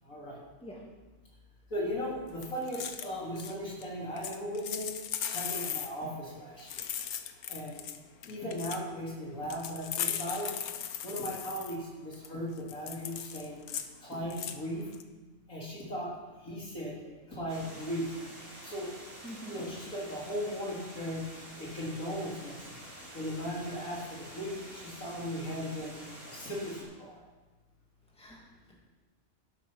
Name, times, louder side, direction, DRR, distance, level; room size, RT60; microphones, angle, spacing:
voice 1, 0.0-0.4 1.7-4.9 5.3-6.8 7.5-7.8 8.3-10.5 11.0-13.6 14.0-14.9 15.5-16.1 16.4-16.9 17.3-18.1 18.6-18.9 19.5-21.2 21.6-22.6 23.1-26.0 26.3-27.2, equal, 70° left, -4 dB, 3.7 m, -37 dB
sound 1, 2.4-3.1 3.4-3.5 3.8-3.9 4.2-5.9 6.6-8.8 9.5-11.8 12.1-12.3 12.6-13.9 14.3-14.6 14.9-15.0, left 9 dB, 90° left, 1.3 m, -37 dB
Water, 17.5-26.8, right 1 dB, 25° right, 5.1 m, -48 dB
voice 2, 19.2-19.6 28.1-28.8, equal, 5° left, -3 dB, 2.4 m, -47 dB
12.0 x 10.5 x 5.8 m, 1.2 s
omnidirectional pair, 1.5 m